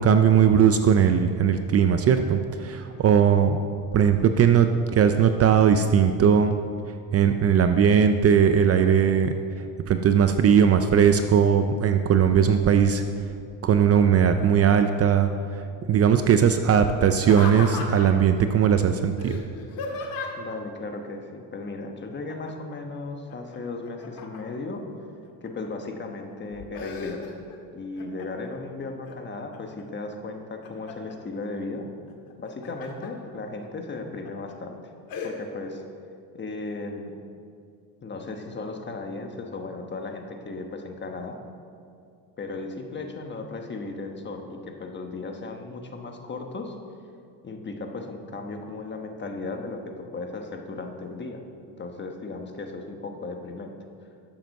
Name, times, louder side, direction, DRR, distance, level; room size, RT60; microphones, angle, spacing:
voice 1, 0.0-3.6 3.9-6.5 7.1-9.3 9.9-13.0 13.6-19.4, right 7 dB, 40° right, 8 dB, 0.5 m, -19 dB
Laughter, 17.2-18.3 19.2-20.6 22.3-22.8 23.1-24.7 25.2-25.9 26.3-27.6 28.0-28.6 29.1-29.8 30.3-31.2 32.3-33.1 33.6-33.7 34.3-34.5 35.1-35.3, left 4 dB, 60° left, 1.9 m, -36 dB
voice 2, 20.4-24.8 25.4-27.3 27.7-31.9 32.4-34.9 35.2-35.8 36.3-37.1 38.0-41.4 42.4-46.7 47.4-53.7, left 3 dB, 25° left, 3 dB, 1.2 m, -36 dB
12.0 x 7.8 x 6.5 m, 2.4 s
cardioid pair, 135°, 40 cm